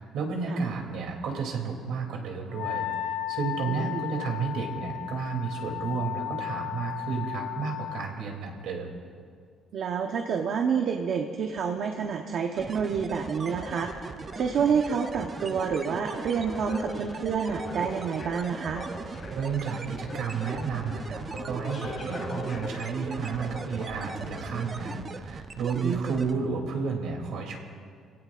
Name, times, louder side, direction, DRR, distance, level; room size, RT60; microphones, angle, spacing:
voice 1, 0.0-9.0 19.3-27.6, right 5 dB, 80° right, 1 dB, 2.9 m, -32 dB
Wind instrument woodwind instrument, 2.5-8.1, left 12 dB, 65° left, 0.6 m, -34 dB
voice 2, 3.7-4.0 9.7-13.9 14.4-18.9 25.8-26.2, right 6 dB, 55° right, 3 dB, 1.0 m, -28 dB
sound 1, 12.6-26.3, right 4 dB, 30° right, 0.6 m, -39 dB
sound 2, 13.6-25.2 25.8-25.9, left 2 dB, 40° left, 2.5 m, -42 dB
27.0 x 17.0 x 2.5 m, 2.1 s
cardioid pair, 150°, 0 cm